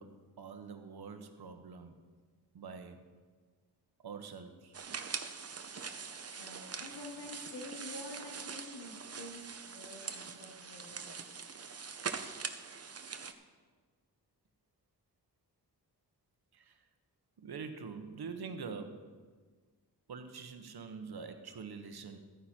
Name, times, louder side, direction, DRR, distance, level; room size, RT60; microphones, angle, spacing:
voice 1, 0.0-1.9 2.5-3.0 4.0-4.7 16.5-16.8 17.4-19.1 20.1-22.2, right 5 dB, 65° right, 7 dB, 1.2 m, -45 dB
sound 1, 4.7-13.3, right 5 dB, 35° right, 0.8 m, -43 dB
voice 2, 6.3-11.2, left 2 dB, 90° left, -1 dB, 2.2 m, -48 dB
13.5 x 9.7 x 4.4 m, 1.5 s
cardioid pair, 90°, 40 cm